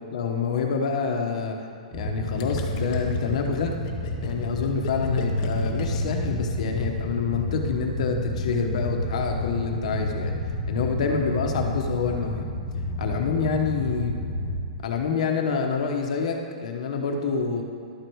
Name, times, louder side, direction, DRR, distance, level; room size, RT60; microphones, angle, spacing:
voice 1, 0.1-1.6 1.9-3.7 4.2-10.3 10.7-12.5 13.0-14.2 14.8-17.6, left 5 dB, 55° left, 3 dB, 1.0 m, -27 dB
sound 1, 1.9-14.5, left 1 dB, 5° right, 1.8 m, -30 dB
Gurgling, 2.4-7.1, left 5 dB, 30° left, 0.7 m, -37 dB
12.0 x 4.8 x 4.6 m, 2.2 s
hypercardioid pair, 170°, 4 cm